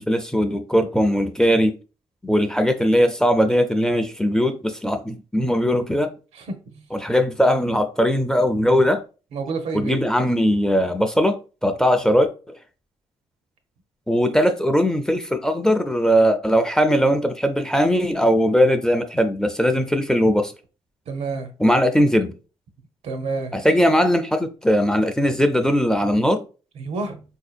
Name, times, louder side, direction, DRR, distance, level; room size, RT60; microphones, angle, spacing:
voice 1, 0.0-1.8 2.2-6.1 6.9-9.0 9.7-11.4 11.6-12.3 14.1-20.5 21.6-22.3 23.5-26.4, equal, 5° left, 0.4 m, -19 dB
voice 2, 9.3-10.0 21.1-21.5 23.0-23.5 26.8-27.2, right 3 dB, 75° right, 0.7 m, -28 dB
3.9 x 2.7 x 2.4 m
cardioid pair, 85°, 11 cm